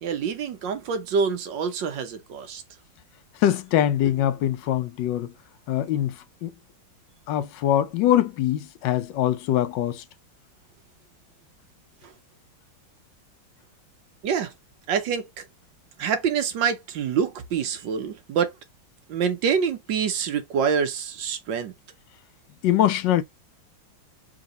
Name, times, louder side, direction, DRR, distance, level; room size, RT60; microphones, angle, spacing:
voice 1, 0.0-2.6 12.0-12.1 14.2-14.5 14.9-15.4 16.0-18.6 19.1-21.7, right 6 dB, 70° right, 1.5 m, -26 dB
voice 2, 3.4-5.3 5.7-6.2 6.4-6.5 7.3-10.0 22.6-23.2, left 11 dB, 75° left, 1.2 m, -23 dB
3.8 x 2.9 x 3.7 m
omnidirectional pair, 2.2 m